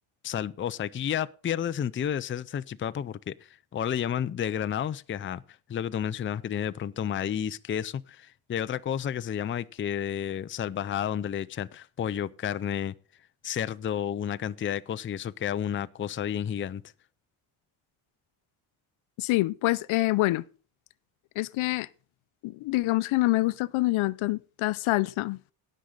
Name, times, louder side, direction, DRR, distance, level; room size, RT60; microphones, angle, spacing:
voice 1, 0.2-5.4 5.7-12.9 13.4-16.8, left 9 dB, 25° left, 0.5 m, -31 dB
voice 2, 19.2-20.4 21.4-21.9 22.4-25.4, left 19 dB, 70° left, 0.7 m, -26 dB
17.5 x 6.5 x 3.9 m
cardioid pair, 100°, 50 cm